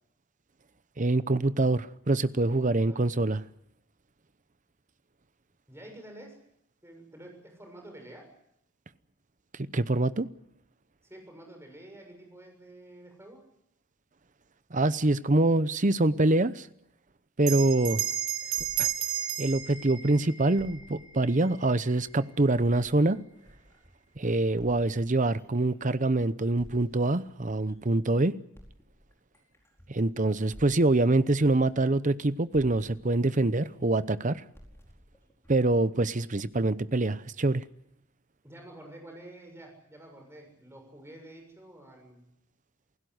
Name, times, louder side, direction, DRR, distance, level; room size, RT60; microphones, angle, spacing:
voice 1, 1.0-3.4 9.5-10.3 14.7-16.7 17.4-18.0 18.8-18.9 19.4-23.2 24.2-28.4 29.9-34.4 35.5-37.7, right 2 dB, 35° right, 0.8 m, -25 dB
voice 2, 2.5-3.0 5.7-6.4 6.8-8.3 11.0-13.4 38.4-42.3, right 1 dB, 10° right, 6.9 m, -49 dB
Bell, 17.4-22.3, right 11 dB, 80° right, 2.6 m, -34 dB
sound 1, 17.7-20.1 20.6-24.1 24.6-28.1 28.5-32.2 32.5-36.6, equal, 10° left, 4.6 m, -55 dB
28.5 x 16.5 x 8.0 m
head